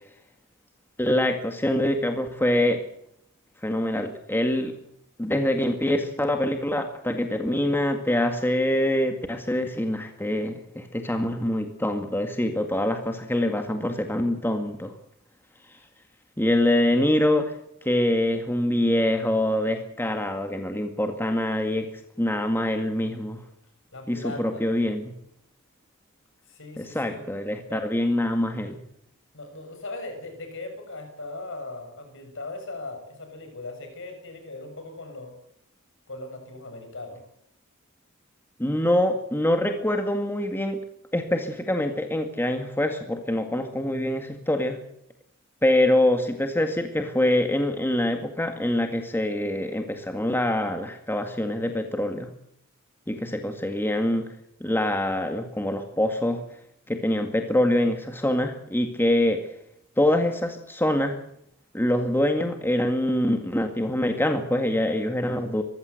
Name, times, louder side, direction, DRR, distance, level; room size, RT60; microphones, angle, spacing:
voice 1, 1.0-2.8 3.6-4.8 5.2-14.9 16.4-17.5 17.8-21.9 22.2-23.4 24.1-25.1 26.8-28.8 38.6-40.8 41.1-44.8 45.6-52.3 53.1-54.3 54.6-56.4 56.9-59.5 60.0-61.2 61.7-65.6, left 1 dB, 10° left, 5 dB, 2.0 m, -25 dB
voice 2, 23.9-24.7 26.5-27.2 27.7-27.8 29.3-35.3 36.1-37.2 53.6-53.7, left 2 dB, 65° left, 5 dB, 6.9 m, -39 dB
24.0 x 15.5 x 8.2 m, 0.73 s
head